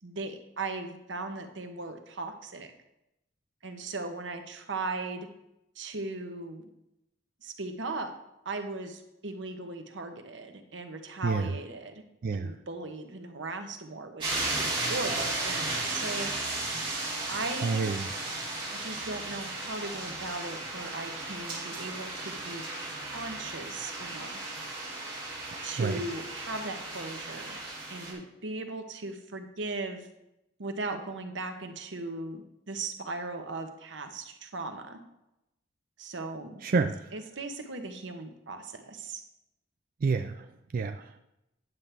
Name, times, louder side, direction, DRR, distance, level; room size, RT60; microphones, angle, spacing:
voice 1, 0.0-2.7 3.6-5.3 5.8-6.6 7.4-8.1 8.4-12.0 12.3-16.3 17.3-17.8 18.7-24.5 25.6-27.6 27.9-30.1 30.6-35.0 36.0-36.8 37.1-39.2, right 3 dB, 90° right, 6 dB, 1.0 m, -38 dB
sound 1, 14.2-28.1, right 2 dB, 30° right, 3.0 m, -35 dB
voice 2, 17.6-18.1 25.8-26.0 36.6-36.9 40.0-40.5 40.7-41.2, right 4 dB, 50° right, 7 dB, 0.4 m, -28 dB
9.4 x 7.4 x 3.4 m, 0.87 s
head